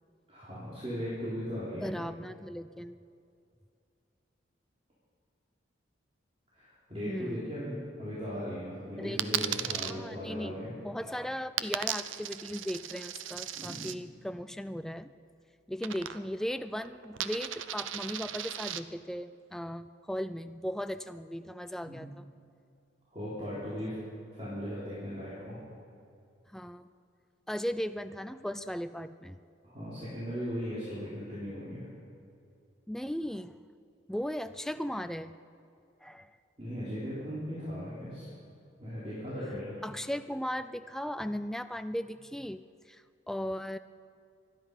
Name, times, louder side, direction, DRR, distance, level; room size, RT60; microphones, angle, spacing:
voice 1, 0.3-2.0 6.5-10.7 13.5-13.9 21.8-22.1 23.1-24.0 24.3-25.6 29.6-31.8 36.6-38.3 38.8-39.7, equal, 30° right, -10 dB, 3.7 m, -38 dB
voice 2, 1.7-3.0 7.0-7.5 9.0-9.4 9.9-15.1 15.7-22.3 26.5-26.9 27.5-29.4 32.9-33.5 34.1-35.4 36.0-36.4 39.8-43.8, equal, ahead, 11 dB, 0.3 m, -37 dB
Coin (dropping), 9.2-9.9 11.6-14.0 15.8-16.5 16.7-18.8, right 11 dB, 80° right, 0.6 m, -36 dB
25.0 x 10.5 x 5.5 m, 2.5 s
head